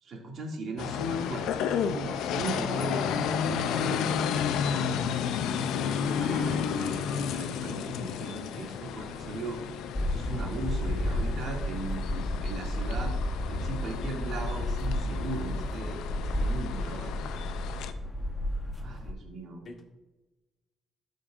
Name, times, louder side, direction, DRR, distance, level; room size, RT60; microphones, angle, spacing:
voice 1, 0.0-4.2 6.0-9.6 10.0-13.1 13.5-16.0 16.4-17.1 17.7-17.8 18.8-19.6, right 2 dB, 65° right, -1 dB, 2.3 m, -38 dB
sound 1, 0.8-17.9, left 7 dB, 80° left, 0.5 m, -32 dB
voice 2, 4.5-4.9 6.1-6.8 19.6-19.8, left 3 dB, 45° left, -1 dB, 2.0 m, -43 dB
sound 2, 10.0-19.1, left 1 dB, 20° left, 1.1 m, -32 dB
12.5 x 5.2 x 2.5 m, 1.1 s
cardioid pair, 85°, 0 cm